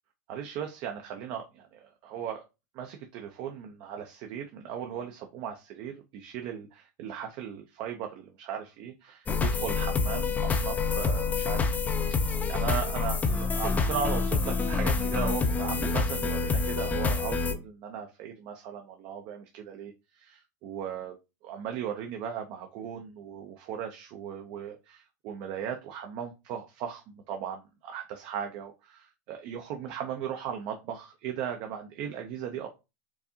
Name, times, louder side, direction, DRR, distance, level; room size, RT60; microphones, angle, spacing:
voice 1, 0.3-2.5 2.7-11.8 12.2-21.2 21.4-32.7, right 8 dB, 45° right, 4 dB, 0.6 m, -37 dB
sound 1, 9.3-17.5, left 4 dB, 15° left, 0.4 m, -27 dB
4.6 x 2.6 x 2.7 m, 0.26 s
supercardioid pair, 130°, 10 cm